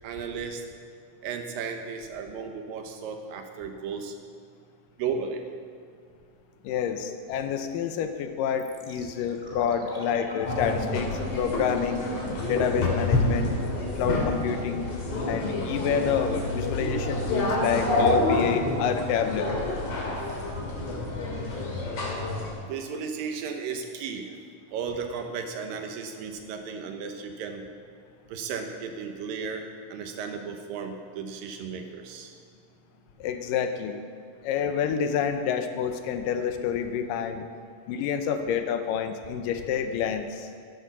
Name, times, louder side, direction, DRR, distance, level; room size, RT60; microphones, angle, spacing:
voice 1, 0.0-0.6 1.2-4.1 5.0-5.4 22.7-24.3 24.7-27.6 28.3-29.6 29.9-32.3, right 6 dB, 80° right, 5 dB, 2.8 m, -34 dB
voice 2, 6.6-12.0 12.5-13.5 14.0-14.9 15.3-19.5 33.2-34.0 34.4-37.5 37.9-40.5, left 7 dB, 80° left, 8 dB, 2.4 m, -28 dB
sound 1, 8.6-20.6 20.8-20.9, left 1 dB, 25° left, 1.3 m, -39 dB
sound 2, 10.4-22.5, left 2 dB, 55° left, 3.3 m, -28 dB
12.5 x 10.5 x 6.1 m, 2.3 s
omnidirectional pair, 4.0 m